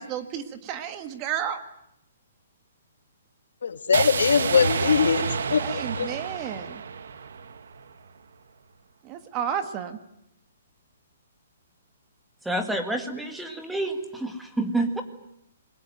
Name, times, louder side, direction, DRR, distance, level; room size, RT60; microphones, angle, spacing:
voice 1, 0.0-1.6 5.6-6.8 9.0-10.0, right 9 dB, 20° right, 9 dB, 1.6 m, -32 dB
voice 2, 3.6-6.1, left 6 dB, 80° left, 9 dB, 2.2 m, -22 dB
sound 1, 3.9-8.0, right 5 dB, 70° right, 1.6 m, -29 dB
voice 3, 12.5-15.0, right 2 dB, 5° right, 5 dB, 1.9 m, -28 dB
28.0 x 21.0 x 9.2 m, 0.80 s
hypercardioid pair, 165°, 0 cm